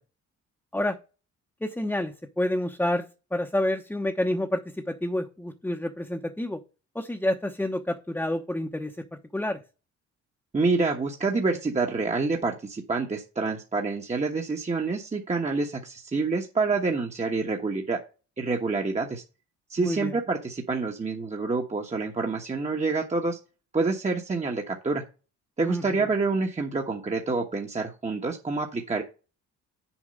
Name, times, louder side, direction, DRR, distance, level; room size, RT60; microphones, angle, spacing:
voice 1, 1.6-6.6 6.9-9.0 9.3-9.6 19.8-20.2 25.6-25.8, left 1 dB, 5° left, 3 dB, 1.0 m, -28 dB
voice 2, 10.5-18.0 18.4-19.2 19.7-23.4 23.7-25.0 25.6-29.0, right 3 dB, 25° right, 1 dB, 1.2 m, -27 dB
7.3 x 4.5 x 6.5 m, 0.32 s
cardioid pair, 90°, 30 cm